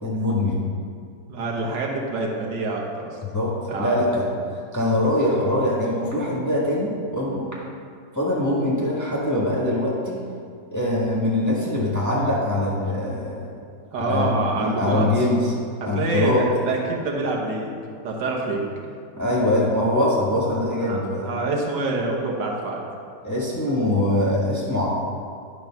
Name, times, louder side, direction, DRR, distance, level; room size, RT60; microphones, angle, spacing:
voice 1, 0.0-0.7 3.3-4.3 4.7-7.5 8.1-10.2 10.7-13.5 13.9-14.3 14.6-15.5 15.8-16.4 19.2-21.2 23.2-24.9, left 1 dB, 10° left, -6 dB, 1.4 m, -23 dB
voice 2, 1.3-3.2 3.7-4.2 13.9-15.1 15.8-17.8 18.0-18.9 20.8-22.8, right 3 dB, 80° right, -1 dB, 1.8 m, -26 dB
11.5 x 4.0 x 5.8 m, 2.3 s
omnidirectional pair, 1.9 m